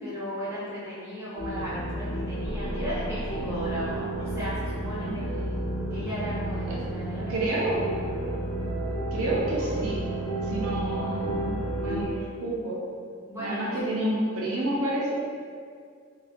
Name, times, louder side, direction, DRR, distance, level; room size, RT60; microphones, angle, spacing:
voice 1, 0.0-7.7 13.3-14.0 14.3-14.6, equal, 10° right, -10 dB, 0.5 m, -36 dB
sound 1, 1.4-12.0, right 1 dB, 65° left, 0.7 m, -31 dB
voice 2, 7.3-7.8 9.1-10.0 10.5-12.8 13.4-15.1, right 1 dB, 80° right, -5 dB, 0.4 m, -29 dB
2.3 x 2.1 x 2.5 m, 2.2 s
head